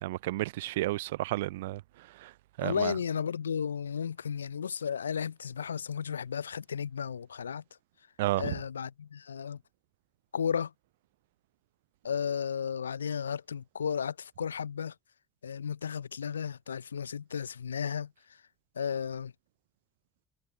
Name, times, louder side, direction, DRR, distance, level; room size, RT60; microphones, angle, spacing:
voice 1, 0.0-1.8 2.2-2.3 2.6-3.0 8.2-8.6, right 17 dB, 75° right, 0.3 m, -31 dB
voice 2, 2.6-7.6 8.4-9.6 10.3-10.7 12.0-14.9 15.4-18.1 18.8-19.3, left 7 dB, 85° left, 0.4 m, -34 dB
figure-of-eight pair, 55°, 0 cm